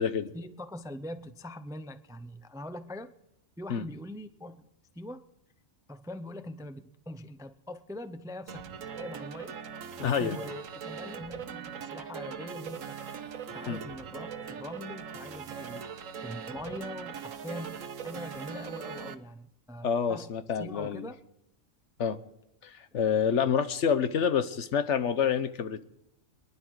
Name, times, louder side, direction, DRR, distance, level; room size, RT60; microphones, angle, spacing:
voice 1, 0.3-3.1 3.6-4.6 4.9-5.2 5.9-9.6 10.0-13.0 13.5-16.0 16.2-21.2, left 1 dB, 5° right, 11 dB, 0.4 m, -42 dB
sound 1, 8.5-19.1, right 7 dB, 85° right, 1.3 m, -40 dB
voice 2, 10.0-10.4 13.7-13.8 19.8-21.1 22.0-22.2 22.6-25.8, left 7 dB, 65° left, 12 dB, 1.2 m, -28 dB
23.5 x 11.5 x 4.7 m, 0.84 s
omnidirectional pair, 1.3 m